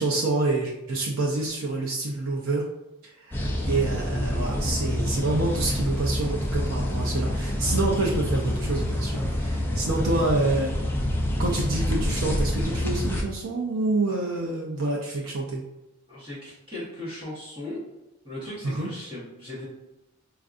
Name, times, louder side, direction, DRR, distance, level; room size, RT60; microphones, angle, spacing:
voice 1, 0.0-2.7 3.0-10.7 11.4-15.6 18.6-18.9, right 2 dB, 75° right, -2 dB, 0.5 m, -27 dB
sound 1, 3.3-13.2, left 1 dB, 10° left, 0.3 m, -27 dB
voice 2, 16.1-17.8 18.2-19.6, left 1 dB, 25° right, -9 dB, 1.1 m, -37 dB
4.5 x 2.4 x 2.5 m, 0.94 s
head